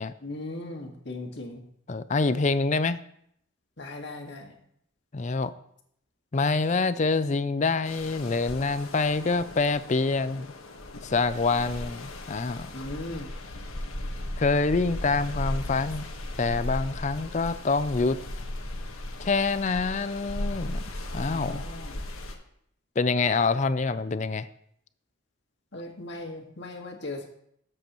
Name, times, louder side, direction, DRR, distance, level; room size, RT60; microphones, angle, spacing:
voice 1, 0.2-1.6 3.8-4.6 12.7-13.3 21.3-22.0 25.7-27.2, left 2 dB, 55° left, 1 dB, 1.9 m, -38 dB
voice 2, 1.9-3.0 5.1-5.5 6.3-10.5 11.0-12.7 14.4-16.0 16.4-18.2 19.2-20.8 21.1-21.6 23.0-24.5, left 3 dB, 35° left, 14 dB, 0.4 m, -26 dB
sound 1, 7.9-22.4, left 1 dB, 85° left, 1.5 m, -37 dB
19.5 x 7.7 x 3.1 m, 0.71 s
head